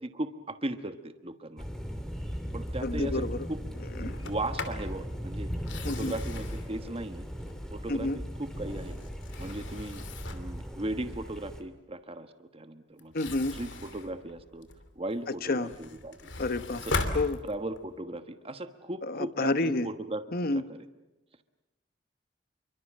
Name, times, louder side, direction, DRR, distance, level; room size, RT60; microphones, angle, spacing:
voice 1, 0.0-1.7 2.5-3.6 4.0-5.5 6.0-7.3 7.7-9.0 9.4-10.0 10.3-13.1 13.5-14.7 15.0-16.3 16.8-16.9 17.4-20.2 20.5-20.8, right 1 dB, 30° right, 9 dB, 1.2 m, -37 dB
Thunder, 1.6-11.6, equal, 5° left, 2.7 m, -38 dB
voice 2, 2.8-3.5 4.0-4.2 5.8-6.1 7.9-8.2 13.1-13.6 15.4-15.7 16.4-16.8 17.1-17.4 19.0-19.9 20.3-20.6, left 2 dB, 55° left, 13 dB, 1.0 m, -29 dB
Sliding door, 4.1-4.9 5.5-7.9 8.4-10.6 13.0-14.9 15.4-17.9, left 2 dB, 75° left, 2.9 m, -38 dB
28.0 x 24.0 x 7.5 m, 1.0 s
head